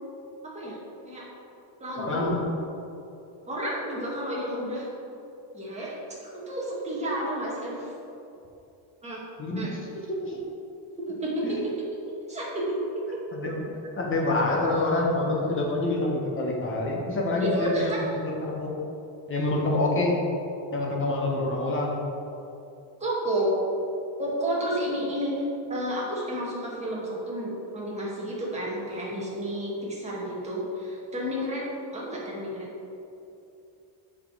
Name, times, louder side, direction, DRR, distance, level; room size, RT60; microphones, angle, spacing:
voice 1, 0.4-0.8 1.0-1.3 1.8-2.3 3.5-4.9 5.5-6.0 6.2-7.9 9.0-9.2 9.6-9.7 11.0-11.7 12.3-13.0 17.4-18.0 23.0-23.5 24.2-25.3 25.7-31.7 31.9-32.7, equal, 15° right, -6 dB, 1.8 m, -31 dB
voice 2, 2.0-2.4 9.4-9.8 10.1-10.4 11.4-11.6 13.3-13.6 14.0-18.8 19.3-20.2 20.7-22.0, left 2 dB, 25° left, -2 dB, 1.1 m, -27 dB
7.3 x 6.1 x 4.7 m, 2.7 s
cardioid pair, 165°, 47 cm